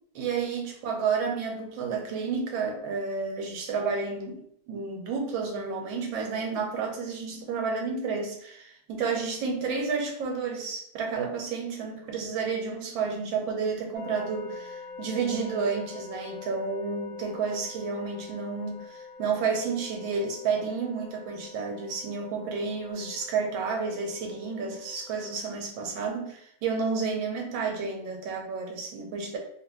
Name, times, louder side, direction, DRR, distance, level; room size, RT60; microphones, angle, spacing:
voice 1, 0.1-4.4 4.7-29.4, right 5 dB, 75° right, 1 dB, 1.3 m, -31 dB
sound 1, 13.9-25.4, left 4 dB, 60° left, 0.8 m, -45 dB
3.2 x 2.4 x 3.0 m, 0.71 s
omnidirectional pair, 2.3 m